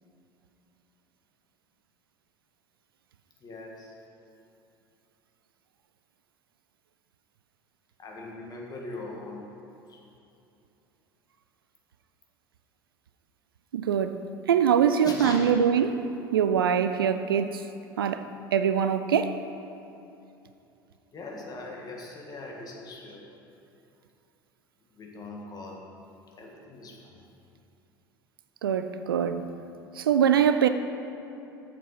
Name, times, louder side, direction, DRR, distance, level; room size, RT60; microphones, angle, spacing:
voice 1, 3.4-4.0 8.0-10.0 15.0-15.5 21.1-23.3 24.9-25.9 26.4-27.2, left 2 dB, 35° left, 1.8 m, -40 dB
voice 2, 13.7-14.2 14.5-15.9 16.3-17.6 18.0-18.3 18.5-19.4 28.6-29.4 30.0-30.7, right 8 dB, 80° right, 0.4 m, -23 dB
7.3 x 6.9 x 5.8 m
figure-of-eight pair, 65°, 12 cm